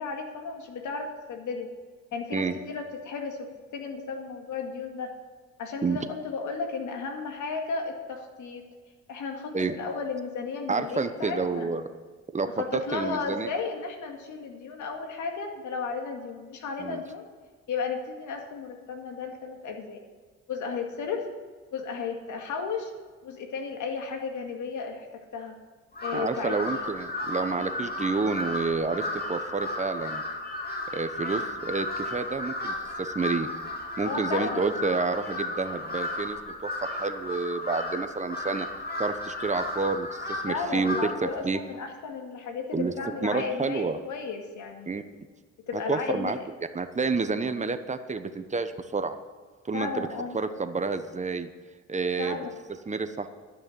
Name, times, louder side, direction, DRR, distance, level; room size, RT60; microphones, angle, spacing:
voice 1, 0.0-1.7 2.1-5.1 5.6-8.7 9.1-11.7 12.6-17.2 17.7-20.0 20.5-21.3 21.7-22.9 23.2-25.1 25.3-25.6 26.0-26.6 34.0-34.7 40.5-45.0 45.7-46.3 49.7-50.4 52.2-52.5, left 5 dB, 75° left, 4 dB, 2.1 m, -34 dB
voice 2, 10.7-11.8 12.3-12.5 12.9-13.5 16.8-17.0 26.1-30.2 30.9-33.5 34.0-38.7 39.0-41.6 42.7-44.0 44.9-45.0 45.7-46.4 46.7-49.1 49.7-50.1 50.3-51.5 51.9-52.4 52.9-53.3, right 4 dB, 25° right, 9 dB, 1.0 m, -29 dB
Crow, 25.9-41.3, left 2 dB, 30° left, 2.5 m, -34 dB
12.0 x 6.4 x 9.1 m, 1.5 s
cardioid pair, 90°, 30 cm